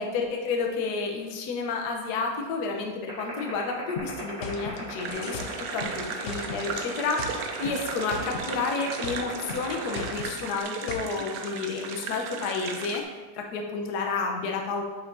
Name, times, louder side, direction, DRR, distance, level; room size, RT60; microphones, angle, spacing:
voice 1, 0.0-5.4 5.7-14.8, left 4 dB, 60° left, 2 dB, 1.2 m, -31 dB
sound 1, 3.1-10.6, right 5 dB, 60° right, 2.8 m, -38 dB
sound 2, 4.0-6.7 7.0-8.5 8.8-11.2, left 4 dB, 85° left, 0.6 m, -38 dB
sound 3, 5.0-13.0, right 5 dB, 85° right, 1.5 m, -37 dB
8.7 x 5.5 x 2.7 m, 1.3 s
omnidirectional pair, 2.2 m